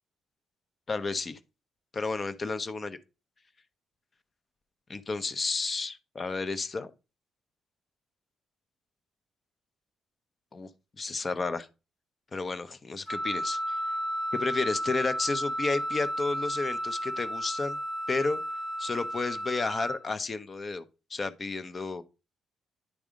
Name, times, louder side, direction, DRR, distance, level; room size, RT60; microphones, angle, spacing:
voice 1, 0.9-1.4 1.9-3.0 4.9-6.9 10.5-10.7 11.0-11.7 12.3-13.8 14.3-17.8 18.1-18.4 18.8-20.8 21.1-22.0, left 3 dB, 35° left, 0.7 m, -32 dB
Wind instrument woodwind instrument, 13.1-20.0, equal, 15° left, 1.0 m, -33 dB
10.0 x 3.5 x 3.7 m
cardioid pair, 85°, 0 cm